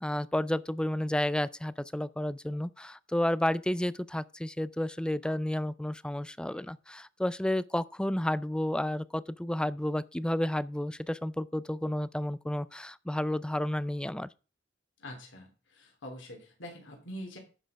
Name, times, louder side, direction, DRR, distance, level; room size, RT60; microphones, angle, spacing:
voice 1, 0.0-14.3, left 1 dB, 5° left, 0.4 m, -31 dB
voice 2, 15.0-17.4, equal, 70° left, 3.1 m, -44 dB
10.0 x 6.4 x 5.1 m
head